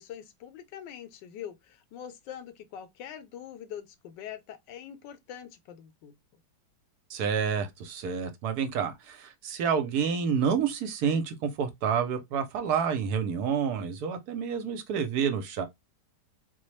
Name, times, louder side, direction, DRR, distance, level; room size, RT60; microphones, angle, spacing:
voice 1, 0.0-6.1, left 9 dB, 85° left, 1.3 m, -43 dB
voice 2, 7.1-15.7, right 7 dB, 70° right, 1.0 m, -29 dB
4.1 x 2.0 x 3.1 m
omnidirectional pair, 1.9 m